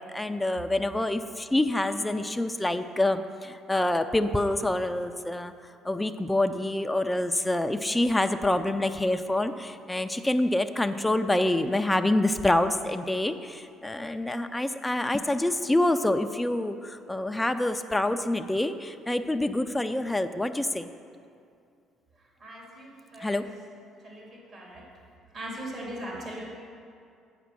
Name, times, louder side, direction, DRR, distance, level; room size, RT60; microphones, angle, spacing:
voice 1, 0.0-20.9 23.2-23.5, left 1 dB, 10° left, 7 dB, 0.4 m, -26 dB
voice 2, 22.4-23.4 24.0-24.8 25.3-26.4, right 1 dB, 50° right, -3 dB, 2.5 m, -39 dB
8.1 x 5.1 x 7.5 m, 2.4 s
cardioid pair, 95°, 0 cm